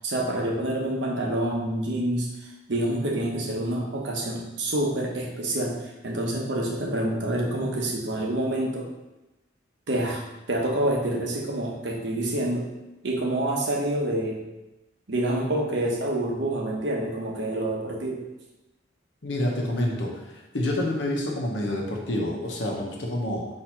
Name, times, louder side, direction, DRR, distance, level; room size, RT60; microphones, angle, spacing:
voice 1, 0.0-2.3 2.7-5.7 6.0-8.9 9.9-12.6 13.0-14.4 15.1-18.2, right 1 dB, 65° right, -1 dB, 0.8 m, -27 dB
voice 2, 19.2-20.2 20.5-23.5, left 1 dB, 70° left, -1 dB, 0.9 m, -27 dB
4.3 x 2.7 x 4.4 m, 1.0 s
head